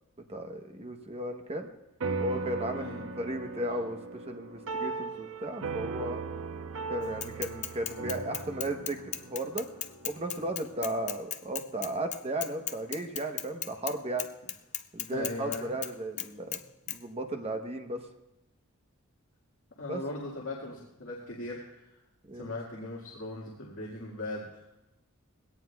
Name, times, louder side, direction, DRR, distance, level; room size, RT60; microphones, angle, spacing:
voice 1, 0.3-1.7 2.2-6.2 6.9-9.7 10.0-14.3 14.9-16.6 16.9-18.0 19.9-20.0 22.3-22.6, right 1 dB, 30° right, 5 dB, 1.0 m, -35 dB
sound 1, 2.0-10.7, right 4 dB, 70° right, 0.8 m, -38 dB
voice 2, 2.7-3.0 10.8-10.9 15.1-15.7 19.8-22.0 22.3-24.5, left 2 dB, 65° left, -4 dB, 2.0 m, -39 dB
Bicycle / Mechanisms, 7.2-13.9 14.2-15.9 16.2-16.6 16.9-17.0, left 11 dB, 35° left, 0.5 m, -36 dB
21.0 x 17.0 x 2.3 m, 0.93 s
head